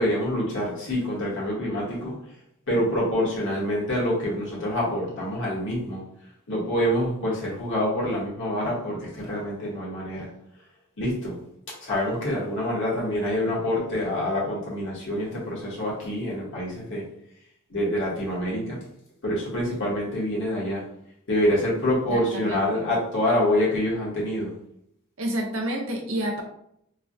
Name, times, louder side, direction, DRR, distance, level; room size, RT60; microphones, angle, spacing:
voice 1, 0.0-2.2 2.7-6.0 6.5-10.3 11.0-11.4 11.8-17.1 17.7-18.8 19.2-20.8 21.3-24.5, left 1 dB, 60° left, -5 dB, 1.2 m, -26 dB
voice 2, 22.1-22.8 25.2-26.4, right 1 dB, 70° right, 1 dB, 0.7 m, -29 dB
3.1 x 2.1 x 2.6 m, 0.72 s
head